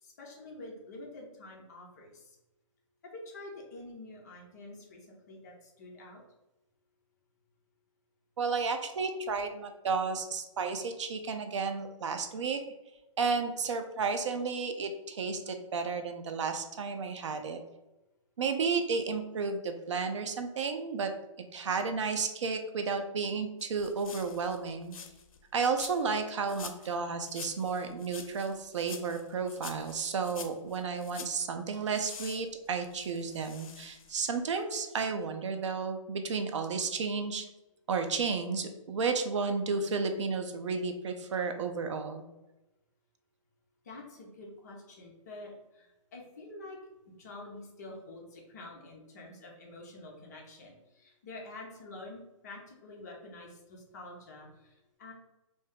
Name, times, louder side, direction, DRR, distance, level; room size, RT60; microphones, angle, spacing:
voice 1, 0.0-2.4 3.0-6.2 43.8-46.8 47.1-55.1, left 2 dB, 30° left, -1 dB, 0.6 m, -47 dB
voice 2, 8.4-12.6 13.2-17.6 18.4-21.1 21.5-25.0 25.5-37.5 37.9-42.2, right 5 dB, 60° right, 6 dB, 0.4 m, -32 dB
sound 1, 23.6-25.4 25.8-26.2 26.5-27.0 27.2-31.4 31.9-34.3 34.6-34.7, left 6 dB, 85° left, 0.5 m, -47 dB
2.6 x 2.2 x 3.5 m, 0.97 s
hypercardioid pair, 170°, 17 cm